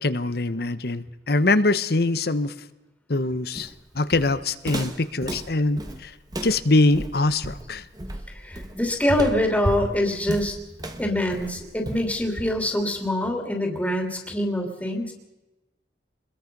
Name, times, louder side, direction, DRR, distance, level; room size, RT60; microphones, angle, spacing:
voice 1, 0.0-2.5 3.1-3.7 3.9-6.1 6.4-7.8, left 2 dB, 60° left, 13 dB, 1.1 m, -23 dB
Walk footsteps, 3.6-12.8, right 1 dB, 25° right, 1.5 m, -33 dB
voice 2, 8.3-10.6 11.0-15.1, left 1 dB, 10° left, 2 dB, 2.9 m, -25 dB
26.0 x 21.5 x 5.4 m, 1.1 s
head